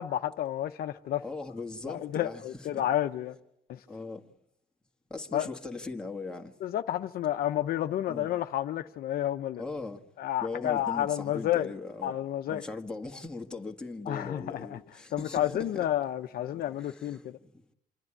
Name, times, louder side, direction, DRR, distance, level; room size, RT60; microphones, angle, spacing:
voice 1, 0.0-1.2 1.9-3.3 3.7-3.8 5.3-5.5 6.6-9.6 10.2-11.7 12.0-12.6 14.1-14.8 15.1-17.4, left 12 dB, 60° left, 0.7 m, -30 dB
voice 2, 1.2-2.8 3.9-4.2 5.1-6.5 8.1-8.3 9.6-10.0 10.4-12.1 12.5-15.9 16.5-17.2, left 3 dB, 5° left, 1.6 m, -39 dB
27.5 x 11.0 x 10.0 m
cardioid pair, 110°, 17 cm